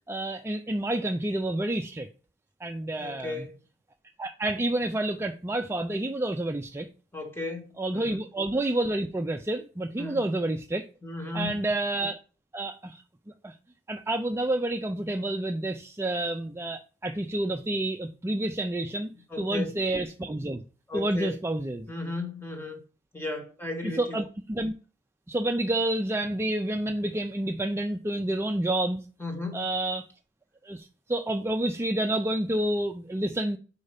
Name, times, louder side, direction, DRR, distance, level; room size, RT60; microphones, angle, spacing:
voice 1, 0.1-2.1 2.6-3.3 4.2-6.9 7.8-10.9 11.3-12.2 12.5-13.0 13.4-13.5 13.9-19.1 19.4-20.6 20.9-21.9 23.8-24.7 25.3-29.0 29.5-30.1 30.6-33.6, right 1 dB, 15° right, 0.4 m, -29 dB
voice 2, 3.0-3.6 7.1-7.7 7.9-8.2 10.0-10.2 11.0-11.6 19.3-19.8 20.9-21.4 21.9-22.8 23.1-24.2 29.2-29.6, left 2 dB, 10° left, 1.5 m, -35 dB
5.1 x 4.8 x 5.4 m
head